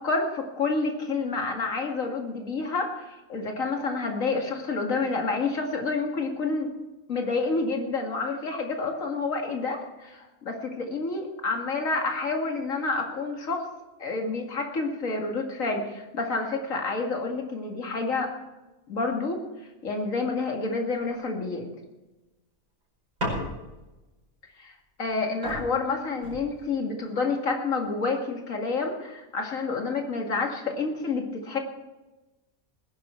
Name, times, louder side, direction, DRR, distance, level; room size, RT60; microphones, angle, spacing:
voice 1, 0.0-6.7 7.1-13.7 14.0-18.3 18.9-19.4 19.8-21.7 24.6-24.7 25.0-31.6, left 3 dB, 65° left, 2 dB, 2.5 m, -29 dB
sound 1, 23.2-23.9 25.0-25.1 25.4-26.9 27.7-28.1, equal, 85° right, 5.7 m, -35 dB
20.0 x 11.0 x 4.5 m, 1.1 s
omnidirectional pair, 1.5 m